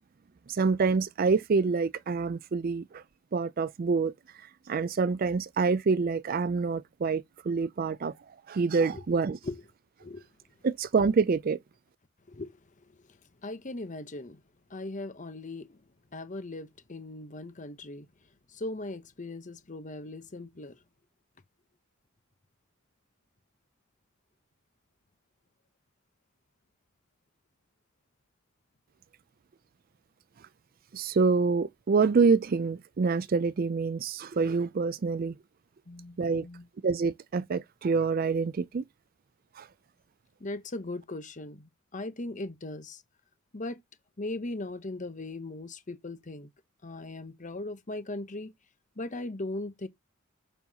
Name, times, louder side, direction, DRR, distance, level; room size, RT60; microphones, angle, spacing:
voice 1, 0.5-3.0 3.3-4.1 4.7-8.1 8.5-9.4 10.6-11.6 30.9-35.4 36.2-36.4 36.8-38.8 39.6-39.7, right 4 dB, 45° right, 0.4 m, -26 dB
voice 2, 12.3-14.4 14.7-15.8 16.1-18.1 18.5-20.8 35.9-36.7 40.4-43.0 43.5-43.8 44.2-46.5 46.8-48.5 49.0-49.9, left 2 dB, 35° left, 1.0 m, -39 dB
7.0 x 5.5 x 2.8 m
head